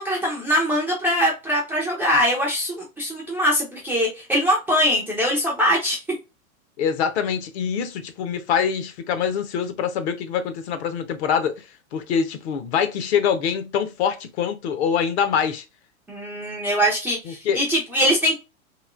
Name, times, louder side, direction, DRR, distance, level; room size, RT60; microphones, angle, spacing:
voice 1, 0.0-6.0 16.1-18.3, equal, 5° right, 0.3 m, -22 dB
voice 2, 6.8-11.6 11.9-15.6 17.3-17.6, left 7 dB, 50° left, 0.7 m, -24 dB
3.0 x 2.8 x 2.4 m
hypercardioid pair, 110°, 42 cm